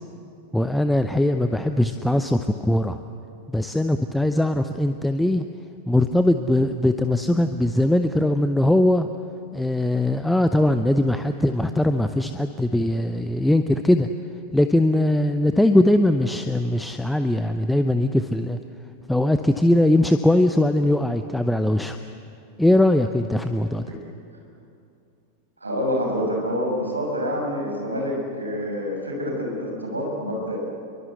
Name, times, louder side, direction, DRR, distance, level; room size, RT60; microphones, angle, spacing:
voice 1, 0.5-3.0 3.5-5.5 5.9-9.1 9.5-14.1 14.5-18.6 19.1-22.0 22.6-24.0, left 1 dB, 5° left, 8 dB, 0.8 m, -20 dB
voice 2, 25.6-30.6, equal, 80° right, 0 dB, 6.5 m, -27 dB
27.5 x 23.5 x 8.0 m, 2.6 s
figure-of-eight pair, 90°, 0 cm